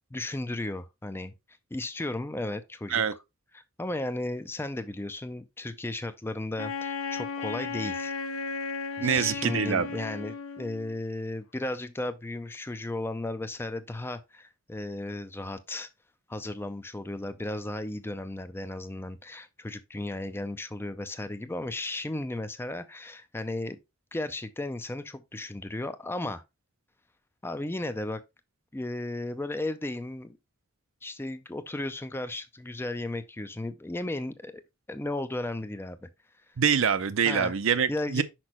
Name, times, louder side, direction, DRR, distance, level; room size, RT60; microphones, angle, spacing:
voice 1, 0.1-1.3 1.7-3.0 3.5-8.1 9.0-15.9 16.3-23.8 24.1-26.4 27.4-28.2 28.7-30.4 31.0-34.6 34.9-36.1 36.5-36.6 37.2-37.5 37.9-38.2, left 2 dB, 10° left, 0.4 m, -35 dB
Wind instrument woodwind instrument, 6.6-10.9, left 5 dB, 75° left, 0.7 m, -35 dB
voice 2, 9.0-10.0 36.6-38.2, right 7 dB, 65° right, 0.5 m, -25 dB
6.0 x 5.3 x 3.0 m
head